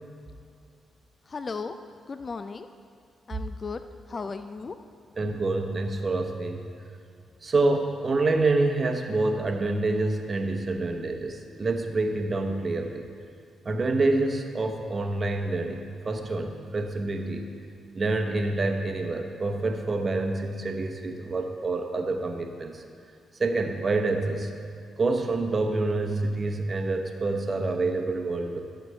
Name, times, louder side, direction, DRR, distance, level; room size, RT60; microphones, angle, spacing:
voice 1, 1.3-1.8 2.1-2.7 3.3-3.8 4.1-4.8, left 4 dB, 45° left, 10 dB, 0.4 m, -35 dB
voice 2, 5.2-6.7 7.4-13.1 13.6-17.5 17.9-22.8 23.4-24.5 25.0-28.6, right 2 dB, 45° right, 5 dB, 0.9 m, -27 dB
12.0 x 7.1 x 3.3 m, 2.4 s
hypercardioid pair, 40°, 0 cm